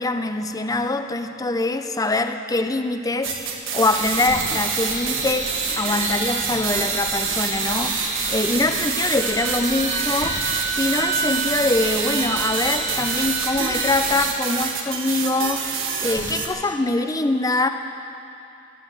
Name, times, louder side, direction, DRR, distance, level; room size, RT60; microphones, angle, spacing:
voice 1, 0.0-17.7, left 2 dB, 20° left, 8 dB, 0.6 m, -24 dB
sound 1, 3.2-16.5, right 6 dB, 90° right, 1.6 m, -28 dB
sound 2, 3.9-14.3, right 3 dB, 35° right, 1.6 m, -30 dB
Wind instrument woodwind instrument, 9.1-13.9, right 5 dB, 55° right, 2.2 m, -30 dB
15.0 x 12.0 x 7.6 m, 2.7 s
head